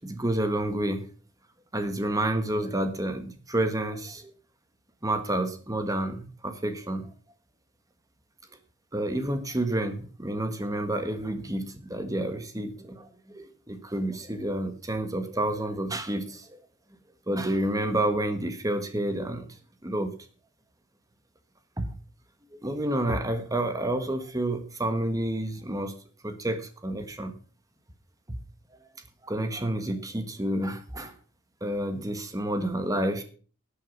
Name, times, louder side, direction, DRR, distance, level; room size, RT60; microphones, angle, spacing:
voice 1, 0.0-1.0 1.7-4.3 5.0-7.1 8.9-16.6 17.3-19.5 19.8-20.1 21.8-21.9 22.6-25.9 26.2-27.3 28.3-28.4 29.2-31.2 31.6-33.2, right 1 dB, 15° right, 8 dB, 1.4 m, -29 dB
12.5 x 8.5 x 5.4 m, 0.40 s
head